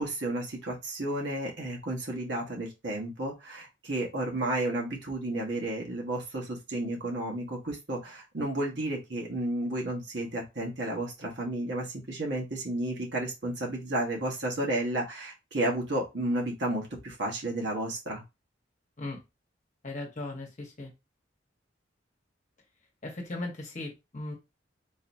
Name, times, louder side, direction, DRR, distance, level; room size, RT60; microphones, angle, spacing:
voice 1, 0.0-18.2, right 1 dB, 65° right, -1 dB, 1.4 m, -32 dB
voice 2, 19.8-20.9 23.0-24.3, left 2 dB, 40° left, 0 dB, 1.1 m, -37 dB
3.9 x 2.8 x 2.7 m, 0.24 s
head